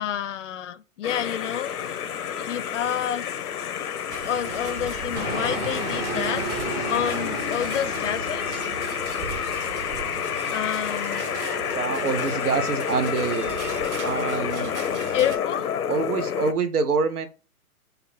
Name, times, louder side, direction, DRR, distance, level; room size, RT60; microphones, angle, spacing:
voice 1, 0.0-1.7 2.4-3.3 4.2-8.7 10.5-11.2 15.1-15.7, left 10 dB, 55° left, 0.5 m, -29 dB
sound 1, 1.0-16.5, left 8 dB, 90° left, 0.7 m, -29 dB
sound 2, 4.1-15.4, right 8 dB, 50° right, 0.7 m, -37 dB
Fixed-wing aircraft airplane, 5.1-10.5, equal, 15° right, 0.5 m, -34 dB
voice 2, 11.7-13.5 14.0-14.7 15.9-17.3, right 5 dB, 80° right, 1.0 m, -26 dB
4.1 x 2.7 x 4.2 m
hypercardioid pair, 140°, 44 cm